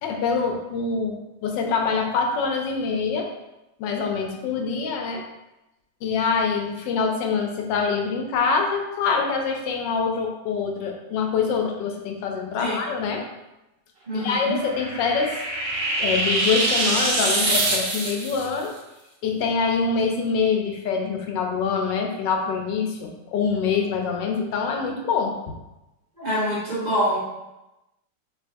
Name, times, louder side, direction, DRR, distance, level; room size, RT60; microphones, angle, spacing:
voice 1, 0.0-3.3 3.8-5.2 6.0-13.2 14.1-15.3 16.0-18.7 19.2-25.6, left 5 dB, 80° left, 3 dB, 1.3 m, -25 dB
voice 2, 14.1-14.6 26.2-27.2, equal, 30° right, -8 dB, 1.0 m, -25 dB
sound 1, 14.3-18.5, right 2 dB, 50° right, 0.8 m, -24 dB
4.5 x 3.1 x 2.6 m, 0.96 s
omnidirectional pair, 1.9 m